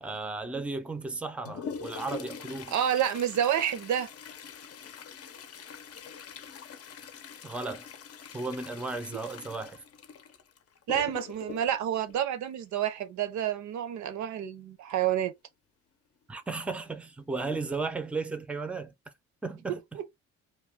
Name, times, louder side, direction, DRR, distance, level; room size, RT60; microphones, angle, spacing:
voice 1, 0.0-2.7 7.4-7.9 8.3-9.8 16.3-18.9 19.4-19.8, right 3 dB, 5° right, 0.5 m, -35 dB
Toilet flush, 1.0-13.0 14.9-15.0 15.3-15.4 16.2-16.3 17.0-17.2 17.7-17.8, left 6 dB, 50° left, 0.6 m, -44 dB
voice 2, 2.7-4.1 10.9-15.3 19.7-20.1, right 10 dB, 70° right, 0.6 m, -29 dB
2.3 x 2.2 x 3.4 m
cardioid pair, 90°, 30 cm